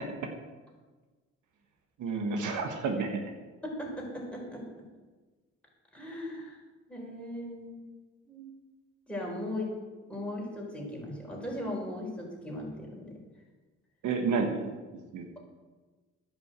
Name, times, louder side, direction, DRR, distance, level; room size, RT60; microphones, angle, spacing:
voice 1, 2.0-3.2 14.0-15.4, right 4 dB, 80° right, 4 dB, 1.4 m, -31 dB
voice 2, 3.6-4.6 5.9-6.6 6.9-7.8 8.3-8.5 9.1-9.7 10.1-13.1, left 1 dB, 5° left, -3 dB, 4.4 m, -38 dB
10.0 x 6.1 x 8.1 m, 1.3 s
cardioid pair, 90°, 30 cm